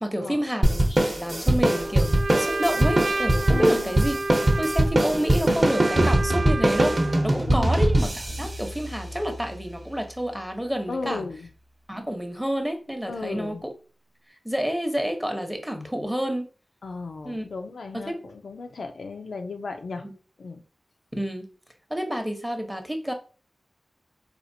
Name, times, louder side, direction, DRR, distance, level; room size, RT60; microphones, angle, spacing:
voice 1, 0.0-4.1 4.6-11.2 11.9-13.7 14.4-16.5 17.2-17.4 17.9-18.2 20.0-20.1 21.2-21.5 21.9-23.1, equal, 5° right, 0.8 m, -29 dB
sound 1, 0.6-9.5, right 1 dB, 35° right, 0.8 m, -22 dB
Trumpet, 1.6-7.3, right 2 dB, 70° right, 0.4 m, -31 dB
voice 2, 3.5-3.9 7.2-7.8 10.9-11.5 13.1-13.6 16.8-20.1 20.4-20.6, left 3 dB, 80° left, 0.4 m, -35 dB
4.3 x 2.4 x 2.7 m
wide cardioid pair, 60°, 0 cm